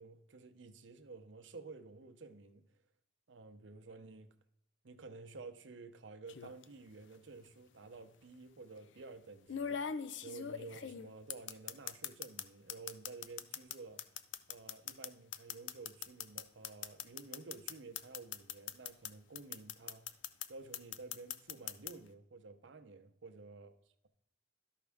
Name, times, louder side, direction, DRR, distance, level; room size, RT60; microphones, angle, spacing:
voice 1, 0.0-2.7 3.3-4.3 4.8-14.1 14.5-20.2 20.5-23.8, right 3 dB, 90° right, 0.7 m, -52 dB
sound 1, 6.3-6.6 7.8-7.9 9.5-12.4 12.7-19.1 19.4-20.5 20.7-21.9, left 8 dB, 80° left, 0.5 m, -41 dB
12.5 x 5.4 x 3.5 m
head